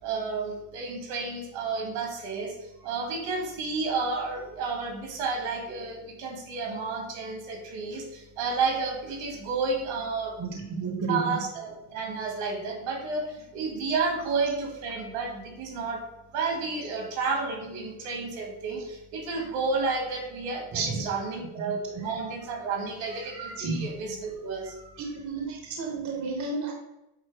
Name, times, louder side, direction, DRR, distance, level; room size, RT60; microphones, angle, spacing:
voice 1, 0.0-10.3 11.1-16.0 16.3-25.1, right 4 dB, 80° right, 2 dB, 2.1 m, -31 dB
voice 2, 10.4-11.2 20.7-21.0 23.6-23.8 25.0-26.7, right 4 dB, 35° right, 2 dB, 1.0 m, -31 dB
8.2 x 2.8 x 4.8 m, 0.92 s
cardioid pair, 150°, 49 cm